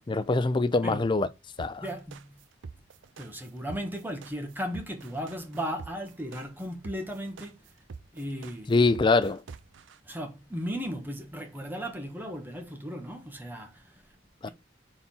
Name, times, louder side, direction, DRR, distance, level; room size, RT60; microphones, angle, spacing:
voice 1, 0.1-1.3 1.6-1.8 8.7-9.4 14.4-14.5, left 3 dB, 25° left, 0.4 m, -24 dB
sound 1, 1.6-10.0, right 5 dB, 75° right, 0.5 m, -45 dB
voice 2, 1.8-2.4 3.2-7.7 8.1-8.7 10.0-14.0 14.4-14.5, equal, 10° right, 1.4 m, -36 dB
4.3 x 4.2 x 5.4 m
head